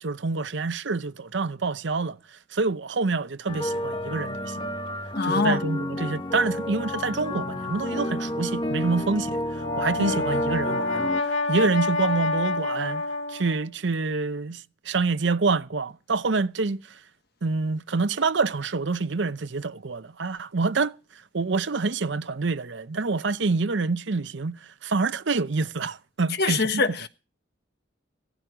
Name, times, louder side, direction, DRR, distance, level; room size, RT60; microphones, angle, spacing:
voice 1, 0.0-2.2 2.5-4.7 5.2-9.4 9.8-11.1 11.5-16.8 17.4-20.9 21.3-26.8, right 4 dB, 65° right, 0.7 m, -27 dB
sound 1, 3.5-11.2, left 1 dB, 25° left, 1.2 m, -30 dB
voice 2, 5.1-5.6 10.0-10.2 26.4-27.1, left 4 dB, 55° left, 1.4 m, -24 dB
Brass instrument, 9.4-13.7, left 3 dB, 85° left, 2.1 m, -28 dB
17.0 x 14.0 x 4.9 m
head